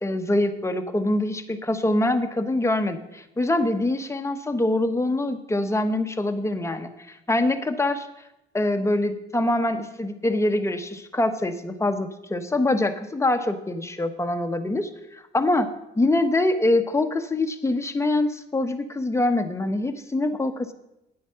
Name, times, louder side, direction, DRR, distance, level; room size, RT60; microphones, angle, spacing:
voice 1, 0.0-8.1 8.5-15.7 16.0-20.7, left 2 dB, 15° left, 7 dB, 1.0 m, -24 dB
9.5 x 8.2 x 5.7 m, 0.87 s
cardioid pair, 90°, 20 cm